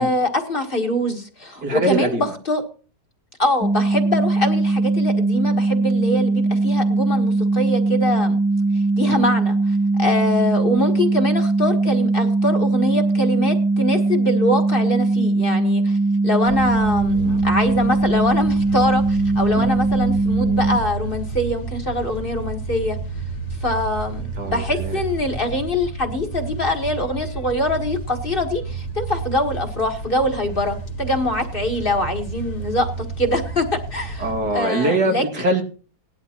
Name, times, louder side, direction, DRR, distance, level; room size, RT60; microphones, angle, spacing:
voice 1, 0.0-2.6 3.4-8.4 9.0-16.0 16.2-23.0 23.6-35.2, left 1 dB, 35° left, 4 dB, 1.7 m, -24 dB
voice 2, 1.6-2.3 9.1-9.2 19.6-19.7 24.4-25.0 34.2-35.6, right 2 dB, 80° right, 1 dB, 2.9 m, -23 dB
sound 1, 3.6-20.8, right 3 dB, 15° right, 0.8 m, -20 dB
sound 2, 16.4-34.5, right 4 dB, 55° left, 2.2 m, -31 dB
18.5 x 12.0 x 2.9 m, 0.38 s
omnidirectional pair, 1.7 m